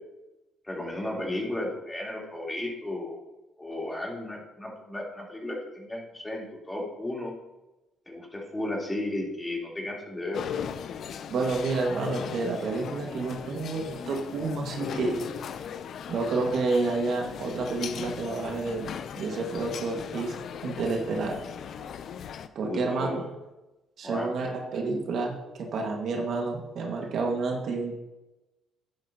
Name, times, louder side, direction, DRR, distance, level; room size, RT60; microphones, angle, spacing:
voice 1, 0.6-3.2 3.6-7.3 8.1-10.4 22.6-23.2 24.0-24.5, left 1 dB, 15° left, -3 dB, 3.7 m, -34 dB
sound 1, 10.3-22.5, left 8 dB, 60° left, 0.6 m, -38 dB
voice 2, 11.3-15.2 16.1-18.9 19.2-20.4 20.6-21.4 22.6-23.2 24.0-27.9, right 3 dB, 65° right, 1 dB, 1.9 m, -29 dB
11.5 x 10.5 x 3.0 m, 1.0 s
cardioid pair, 85°, 0 cm